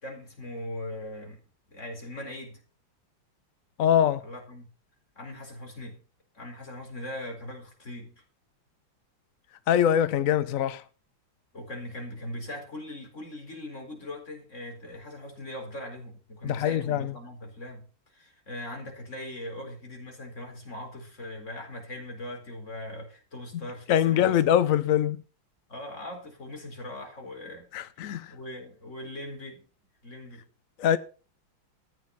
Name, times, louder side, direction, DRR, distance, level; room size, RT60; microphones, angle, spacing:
voice 1, 0.0-1.4 1.7-2.6 4.2-4.7 5.2-6.0 6.3-8.2 11.5-17.8 18.1-24.4 25.7-27.7 28.0-29.6 30.0-30.4, left 1 dB, 35° left, 4.6 m, -40 dB
voice 2, 3.8-4.2 9.7-10.8 16.4-17.1 23.9-25.2 27.7-28.3 30.8-31.0, left 10 dB, 70° left, 0.7 m, -23 dB
14.0 x 9.4 x 5.7 m
omnidirectional pair, 2.3 m